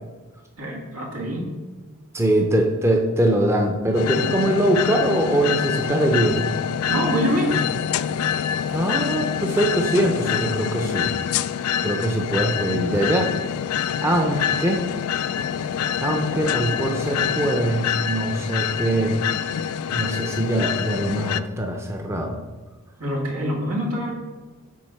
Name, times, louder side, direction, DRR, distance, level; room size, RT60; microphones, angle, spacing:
voice 1, 0.6-1.5 6.9-7.7 23.0-24.1, equal, 85° right, -1 dB, 1.9 m, -25 dB
voice 2, 2.1-6.5 8.7-11.2 11.8-13.3 13.8-14.9 16.0-19.2 19.9-22.4, right 1 dB, 10° right, 2 dB, 0.6 m, -22 dB
sound 1, 3.9-21.4, left 8 dB, 85° left, 0.3 m, -26 dB
7.6 x 4.4 x 5.5 m, 1.3 s
head